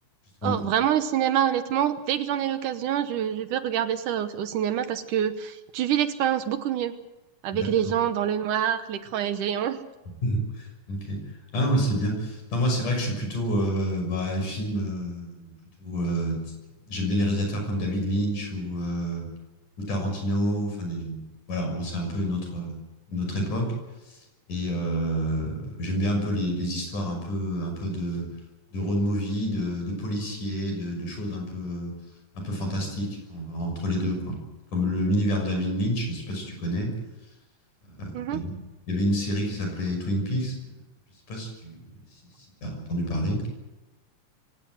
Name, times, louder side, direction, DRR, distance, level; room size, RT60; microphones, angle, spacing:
voice 1, 0.4-6.9 7.4-9.8 38.1-38.4, right 10 dB, 75° right, 10 dB, 2.5 m, -26 dB
voice 2, 10.2-11.2 11.5-15.5 15.8-16.4 16.9-19.3 19.8-21.2 21.5-22.8 23.1-23.7 24.1-24.2 24.5-28.3 28.7-31.9 32.3-34.4 34.7-36.9 38.0-38.5 38.9-40.6 41.3-41.8 42.6-43.4, equal, 65° left, 3 dB, 7.9 m, -28 dB
24.0 x 18.0 x 7.8 m, 1.1 s
omnidirectional pair, 3.9 m